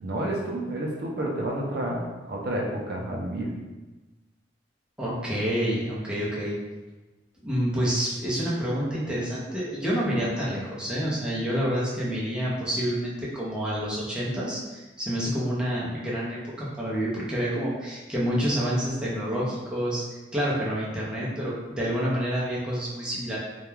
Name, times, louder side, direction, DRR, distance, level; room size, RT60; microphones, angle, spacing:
voice 1, 0.0-3.5, right 1 dB, 55° right, -1 dB, 0.4 m, -30 dB
voice 2, 5.0-6.6 7.4-20.0 20.3-23.4, equal, 5° right, -7 dB, 0.5 m, -28 dB
2.3 x 2.2 x 3.1 m, 1.1 s
head